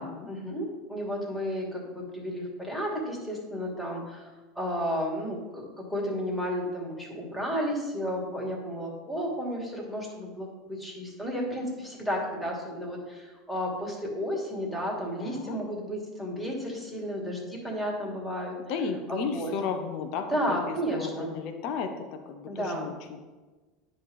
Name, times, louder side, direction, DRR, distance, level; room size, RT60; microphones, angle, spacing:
voice 1, 0.0-4.3 4.6-18.5 19.1-19.5 20.3-21.3 22.5-22.9, equal, 5° left, -3 dB, 2.6 m, -32 dB
voice 2, 15.2-15.6 18.6-22.0 22.3-22.9, left 5 dB, 60° left, 5 dB, 0.8 m, -33 dB
9.7 x 3.4 x 5.5 m, 1.3 s
hypercardioid pair, 85°, 0 cm